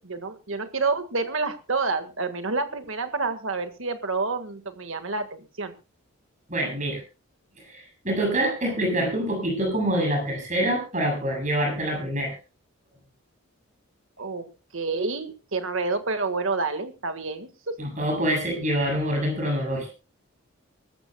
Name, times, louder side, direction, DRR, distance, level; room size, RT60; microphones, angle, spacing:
voice 1, 0.1-5.7 14.2-14.5 14.7-17.8, right 3 dB, 65° right, 8 dB, 1.8 m, -28 dB
voice 2, 6.5-7.0 7.6-12.4 17.8-19.9, right 1 dB, 35° right, 1 dB, 7.7 m, -26 dB
24.0 x 13.5 x 2.3 m, 0.32 s
head